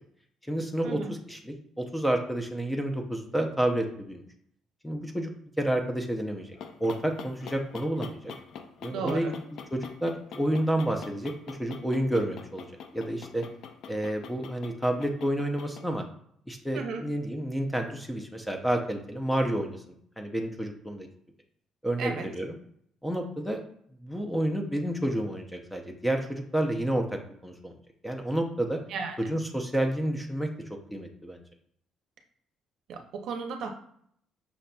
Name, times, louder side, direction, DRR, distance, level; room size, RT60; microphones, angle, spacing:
voice 1, 0.5-4.2 4.8-5.3 5.6-8.3 8.8-9.3 9.7-12.7 12.9-13.5 13.9-16.1 16.5-21.1 21.8-22.6 23.0-23.6 24.0-27.7 28.0-28.8 29.2-30.5 30.9-31.4, right 1 dB, 5° left, 4 dB, 0.5 m, -30 dB
sound 1, 6.3-16.0, left 6 dB, 60° left, 0.4 m, -45 dB
voice 2, 8.9-9.3 16.7-17.0 22.0-22.2 28.9-29.2 32.9-33.7, right 5 dB, 60° right, 4 dB, 0.6 m, -34 dB
5.8 x 3.9 x 2.2 m, 0.67 s
cardioid pair, 150°, 0 cm